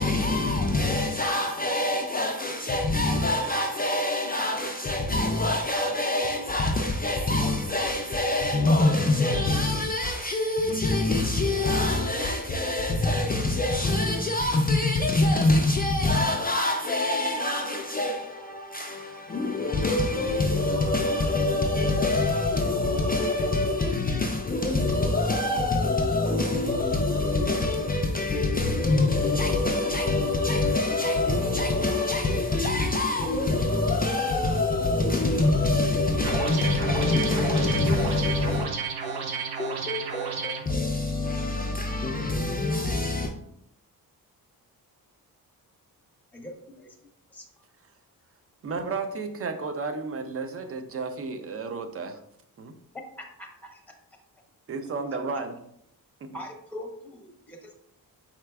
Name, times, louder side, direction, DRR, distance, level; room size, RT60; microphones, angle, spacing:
voice 1, 0.0-38.7 39.6-43.3, left 2 dB, 25° left, 0.3 m, -25 dB
sound 1, 36.2-40.6, right 5 dB, 85° right, 0.8 m, -31 dB
voice 2, 46.3-47.0 47.3-47.5 53.2-53.8 56.3-57.7, left 1 dB, 5° left, 0.8 m, -42 dB
voice 3, 48.6-52.2 52.6-52.7 54.7-55.6 56.2-56.4, right 4 dB, 40° right, 0.5 m, -33 dB
4.8 x 4.4 x 2.3 m
wide cardioid pair, 140°, 36 cm